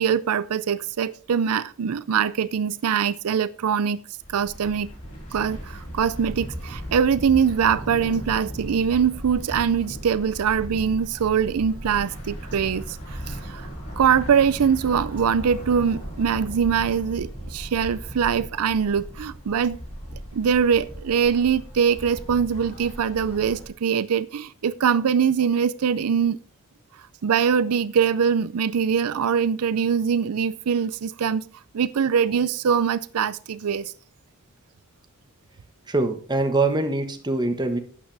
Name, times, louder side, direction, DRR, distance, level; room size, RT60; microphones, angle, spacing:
voice 1, 0.0-4.0 4.3-4.9 5.3-13.7 14.0-19.8 20.3-26.4 27.2-31.4 31.7-33.9, right 7 dB, 80° right, 0.5 m, -23 dB
sound 1, 4.2-23.7, equal, 30° left, 4.2 m, -37 dB
voice 2, 35.9-37.8, right 2 dB, 20° right, 1.2 m, -23 dB
12.0 x 8.8 x 3.3 m
head